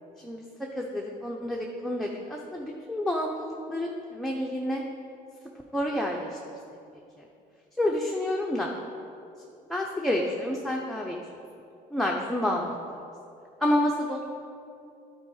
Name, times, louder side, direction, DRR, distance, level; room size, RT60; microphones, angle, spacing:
voice 1, 0.7-4.8 5.7-6.4 7.8-8.7 9.7-11.2 11.9-12.8 13.6-14.2, left 1 dB, ahead, -1 dB, 0.6 m, -29 dB
9.8 x 4.5 x 4.8 m, 2.5 s
cardioid pair, 110°, 17 cm